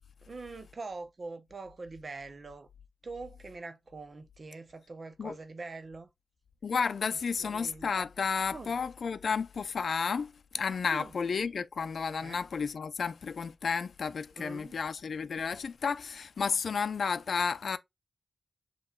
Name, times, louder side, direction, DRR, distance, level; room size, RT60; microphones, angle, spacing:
voice 1, 0.2-2.7 3.0-6.1 7.4-7.9 8.5-8.7 10.9-11.1 12.2-12.4 14.4-14.8, right 3 dB, 45° right, 0.6 m, -43 dB
voice 2, 6.6-17.8, left 5 dB, 75° left, 0.4 m, -32 dB
7.7 x 3.0 x 2.2 m
wide cardioid pair, 135°, 0 cm